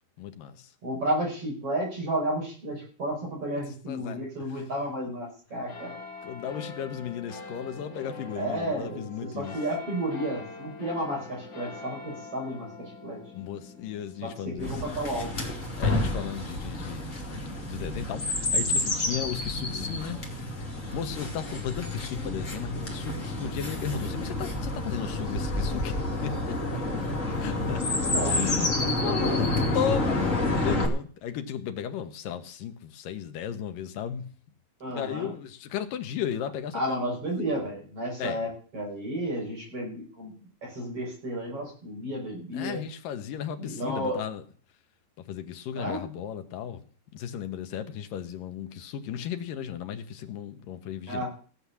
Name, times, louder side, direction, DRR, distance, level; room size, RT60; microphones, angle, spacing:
voice 1, 0.2-0.7 3.9-4.7 6.2-9.6 13.3-14.8 15.8-17.1 17.6-20.2 20.9-26.6 27.4-27.8 28.2-34.2 34.9-37.0 38.2-38.4 42.5-44.4 45.3-46.9 47.1-51.3, left 9 dB, 75° left, 2.8 m, -35 dB
voice 2, 0.8-6.0 8.4-13.2 14.2-15.4 27.8-29.7 34.8-35.3 36.7-42.8 43.6-44.2 45.8-46.0 51.1-51.3, right 1 dB, 40° right, 6.6 m, -32 dB
sound 1, 5.7-18.6 19.2-19.3, left 3 dB, 45° left, 1.8 m, -45 dB
Chirp tweet, 14.6-30.9, left 2 dB, 25° left, 2.4 m, -29 dB
17.0 x 8.0 x 7.0 m
omnidirectional pair, 4.1 m